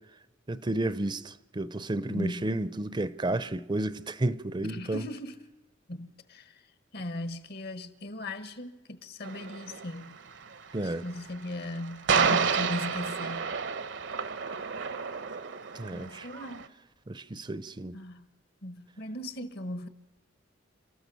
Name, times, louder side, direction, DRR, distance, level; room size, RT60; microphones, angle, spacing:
voice 1, 0.5-5.1 10.7-11.1 15.7-16.3 17.1-18.0, right 2 dB, 25° right, 0.6 m, -32 dB
voice 2, 2.1-2.4 4.6-5.4 5.9-6.5 6.9-10.1 10.8-13.5 15.9-16.7 17.9-18.3 18.6-19.9, left 1 dB, 60° left, 1.4 m, -38 dB
sound 1, 9.2-16.7, right 6 dB, 65° right, 1.0 m, -31 dB
29.5 x 13.5 x 6.9 m
head